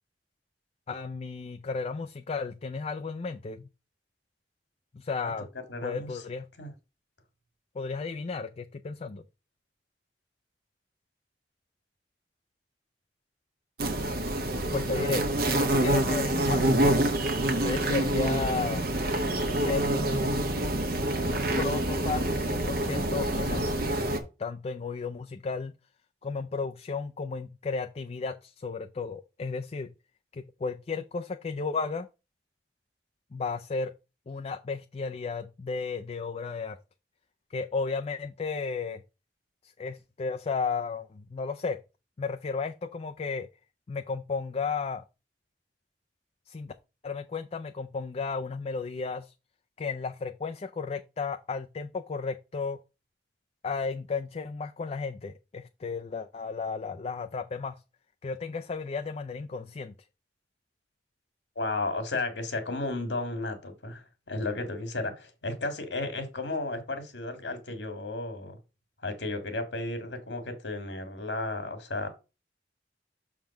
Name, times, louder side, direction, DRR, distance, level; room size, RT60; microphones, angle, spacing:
voice 1, 0.9-3.7 4.9-5.5 5.8-6.5 7.8-9.2 14.7-17.0 17.6-18.8 19.5-20.7 21.6-24.1 24.4-25.8 26.2-29.9 30.3-32.1 33.3-33.9 34.3-36.8 37.5-39.0 39.8-41.8 42.2-43.5 43.9-45.0 46.5-46.7 47.0-49.3 49.8-52.8 53.6-57.8 58.2-59.9, left 4 dB, 35° left, 0.4 m, -34 dB
voice 2, 5.7-6.2 6.6-6.7 61.5-68.6 69.0-72.1, left 2 dB, 85° left, 1.7 m, -33 dB
sound 1, 13.8-24.2, right 1 dB, 60° right, 1.1 m, -27 dB
6.4 x 3.7 x 5.7 m
head